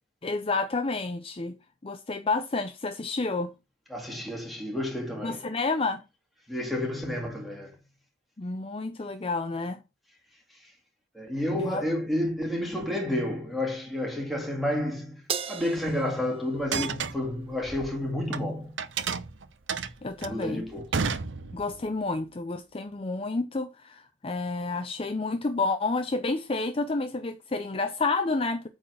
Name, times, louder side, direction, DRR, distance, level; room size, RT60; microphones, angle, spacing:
voice 1, 0.2-1.6 1.8-3.5 5.2-6.0 8.4-9.8 11.6-11.9 20.0-20.7 21.5-28.7, left 3 dB, 30° left, 0.5 m, -30 dB
voice 2, 3.9-5.4 6.5-7.7 11.1-15.2 15.5-18.7 20.3-20.8, left 1 dB, ahead, 2.3 m, -30 dB
Crash cymbal, 15.3-17.8, right 7 dB, 30° right, 0.5 m, -38 dB
sound 1, 16.6-18.4 18.8-21.8, right 5 dB, 75° right, 0.7 m, -32 dB
8.8 x 4.0 x 6.2 m
head